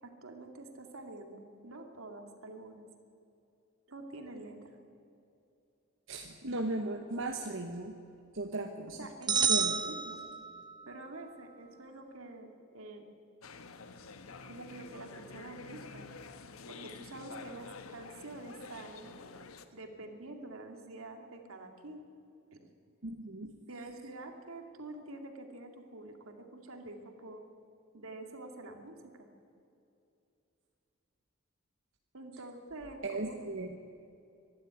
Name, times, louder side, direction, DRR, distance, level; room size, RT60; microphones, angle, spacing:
voice 1, 0.0-2.8 3.9-4.8 9.0-10.2 10.9-13.1 14.4-16.1 16.7-19.2 19.7-22.0 22.5-22.6 23.7-27.4 27.9-29.3 32.1-33.4, right 2 dB, 80° right, 4 dB, 2.4 m, -47 dB
voice 2, 6.1-7.9 8.3-9.0 9.3-9.7 23.0-23.5 33.0-33.7, right 2 dB, 65° right, 4 dB, 1.2 m, -36 dB
sound 1, 9.3-10.8, right 6 dB, 20° right, 0.8 m, -30 dB
sound 2, 13.4-19.7, left 4 dB, 85° left, 1.2 m, -49 dB
24.5 x 11.5 x 9.6 m, 2.7 s
head